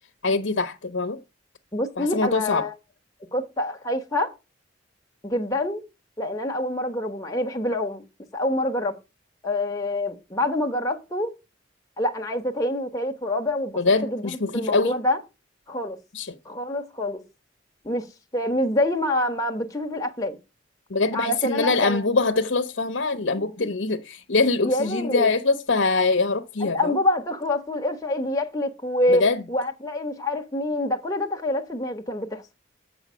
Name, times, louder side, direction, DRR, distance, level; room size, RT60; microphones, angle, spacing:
voice 1, 0.2-1.2 2.0-2.7 13.8-14.9 16.1-16.3 20.9-27.0 29.1-29.4, left 3 dB, 70° left, 0.9 m, -23 dB
voice 2, 1.7-2.7 3.3-4.3 5.2-5.8 6.2-8.0 8.3-8.9 9.4-11.3 12.0-15.2 15.7-16.0 16.4-17.2 17.8-18.1 18.3-20.4 21.1-22.0 24.6-25.3 26.6-32.4, left 1 dB, 20° left, 1.1 m, -26 dB
8.0 x 5.5 x 6.2 m
head